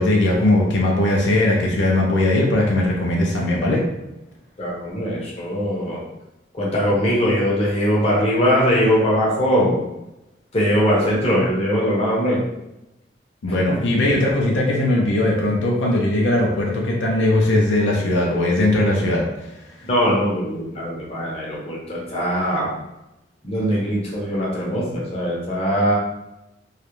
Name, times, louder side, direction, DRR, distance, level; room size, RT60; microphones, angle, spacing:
voice 1, 0.0-3.8 13.4-19.2, left 1 dB, 80° left, -2 dB, 0.5 m, -19 dB
voice 2, 4.6-6.0 6.5-9.8 10.5-12.4 13.7-13.8 19.9-22.7 23.4-26.0, equal, 35° left, -5 dB, 0.7 m, -21 dB
2.3 x 2.0 x 2.9 m, 0.92 s
head